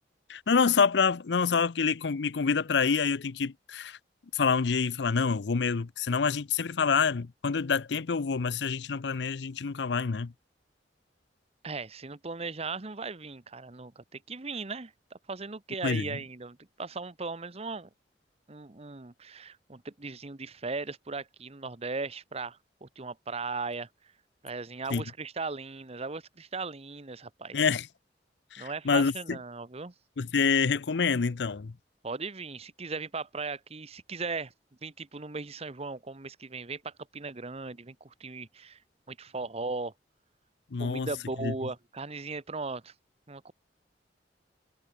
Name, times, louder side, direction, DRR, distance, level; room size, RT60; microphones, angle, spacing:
voice 1, 0.3-4.0 4.3-10.3 15.8-16.2 24.9-25.0 27.5-27.9 28.5-29.4 30.2-31.7 40.7-41.1 41.4-41.5, left 5 dB, 75° left, 0.6 m, -27 dB
voice 2, 11.6-17.9 18.5-23.9 24.4-27.7 28.6-29.9 32.0-34.5 34.8-38.8 39.1-39.9 40.8-42.9 43.3-43.5, right 3 dB, 35° right, 1.1 m, -38 dB
head